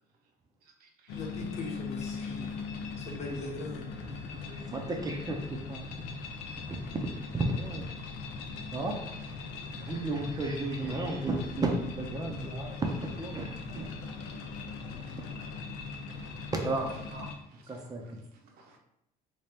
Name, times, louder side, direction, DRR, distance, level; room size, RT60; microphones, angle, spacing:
voice 1, 0.6-1.2 10.8-11.0 16.1-16.4 17.1-17.8 18.6-18.8, right 3 dB, 70° right, 3 dB, 0.8 m, -52 dB
sound 1, 1.1-17.3, left 4 dB, 85° left, 0.5 m, -40 dB
voice 2, 1.1-3.9, left 2 dB, 40° left, -1 dB, 1.0 m, -40 dB
voice 3, 3.3-6.1 6.7-7.0 7.3-7.9 8.7-9.0 9.8-13.9 16.5-16.9 17.7-18.0, right 2 dB, 20° right, 1 dB, 0.5 m, -34 dB
3.0 x 2.8 x 3.4 m, 0.80 s
cardioid pair, 120°, 17 cm